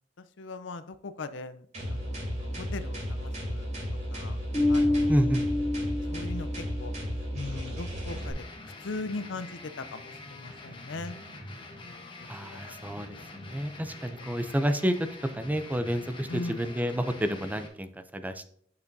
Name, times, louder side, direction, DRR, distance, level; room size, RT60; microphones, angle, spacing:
voice 1, 0.2-3.7 4.1-4.4 4.7-5.1 5.8-6.9 7.3-8.4 8.8-11.2 11.8-12.9 14.2-14.5 16.3-16.7, left 3 dB, 80° left, 12 dB, 0.6 m, -40 dB
sound 1, 1.7-8.3, equal, 40° right, 3.1 m, -34 dB
Bass guitar, 4.5-7.0, left 2 dB, 15° left, 3.4 m, -27 dB
voice 2, 5.1-5.4 12.3-13.1 13.5-14.9 15.2-18.4, equal, 10° right, 9 dB, 0.5 m, -29 dB
sound 2, 8.1-17.7, left 2 dB, 30° left, 1.3 m, -45 dB
8.5 x 6.7 x 2.7 m, 0.62 s
head